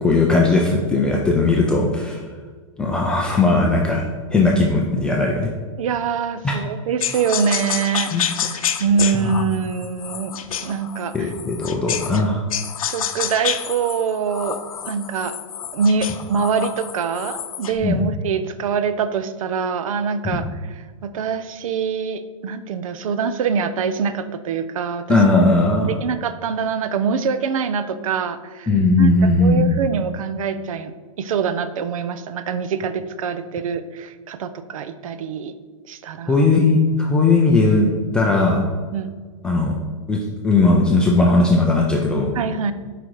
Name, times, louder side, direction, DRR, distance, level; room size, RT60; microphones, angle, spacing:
voice 1, 0.0-2.2 2.8-5.5 6.4-6.5 8.1-8.2 11.1-12.4 17.8-18.0 20.2-20.4 25.1-25.9 28.7-29.8 36.3-37.9 38.1-38.6 39.4-39.8 40.1-40.2 40.4-42.3, left 3 dB, 5° left, -2 dB, 0.3 m, -17 dB
voice 2, 5.8-11.3 12.8-14.6 14.8-15.4 15.7-25.2 25.8-28.7 29.0-30.9 31.2-35.5 35.9-36.5 38.7-39.1 42.3-42.7, right 6 dB, 75° right, 12 dB, 0.7 m, -24 dB
sound 1, 7.0-12.2 12.5-17.8, left 9 dB, 90° left, 0.7 m, -28 dB
8.3 x 5.0 x 4.6 m, 1.5 s
supercardioid pair, 165°, 17 cm